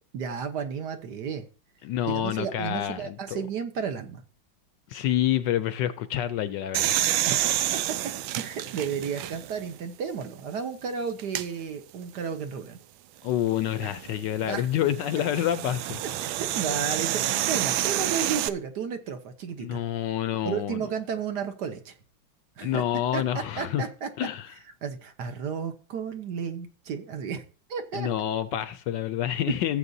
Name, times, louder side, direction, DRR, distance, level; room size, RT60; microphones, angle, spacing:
voice 1, 0.1-1.4 2.1-4.2 7.3-8.0 8.4-12.8 13.8-13.9 14.5-14.7 16.2-19.8 20.4-22.0 22.6-22.8 23.1-24.1 24.8-27.4 27.7-28.1 29.5-29.6, right 6 dB, 60° right, 1.4 m, -33 dB
voice 2, 1.8-3.4 4.9-7.0 13.2-16.0 19.6-20.9 22.6-23.9 24.2-24.5 27.9-29.8, left 11 dB, 75° left, 1.1 m, -28 dB
sound 1, 6.7-9.7 10.2-10.3 11.2-11.5 13.6-18.5, right 13 dB, 80° right, 1.4 m, -28 dB
15.0 x 7.9 x 2.7 m
omnidirectional pair, 2.2 m